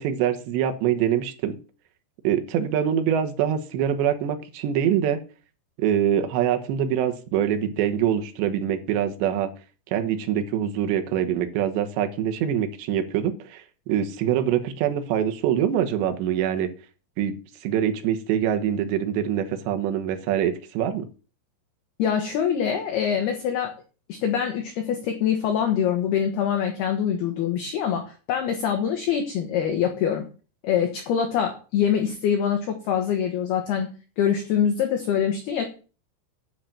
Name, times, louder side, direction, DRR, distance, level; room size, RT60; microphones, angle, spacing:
voice 1, 0.0-1.6 2.2-5.2 5.8-9.5 9.9-16.7 17.2-21.0, right 9 dB, 75° right, 7 dB, 3.0 m, -24 dB
voice 2, 22.0-23.7 24.1-30.2 30.6-35.6, left 8 dB, 65° left, 4 dB, 2.8 m, -24 dB
10.5 x 6.0 x 7.4 m, 0.36 s
omnidirectional pair, 6.0 m